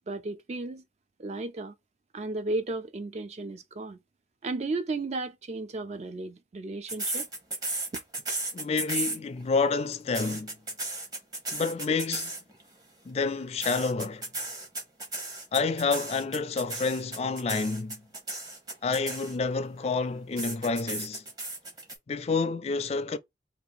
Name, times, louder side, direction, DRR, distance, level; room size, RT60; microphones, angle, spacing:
voice 1, 0.1-0.8 1.2-1.7 2.1-4.0 4.4-7.3, right 2 dB, 40° right, 0.4 m, -34 dB
sound 1, 6.9-9.5 9.9-12.6 13.6-19.6 20.4-22.0, right 2 dB, 20° right, 0.9 m, -34 dB
voice 2, 8.5-10.6 11.5-12.3 13.1-14.2 15.5-18.0 18.8-21.2 22.1-23.2, left 4 dB, 35° left, 0.3 m, -29 dB
2.6 x 2.5 x 3.9 m
head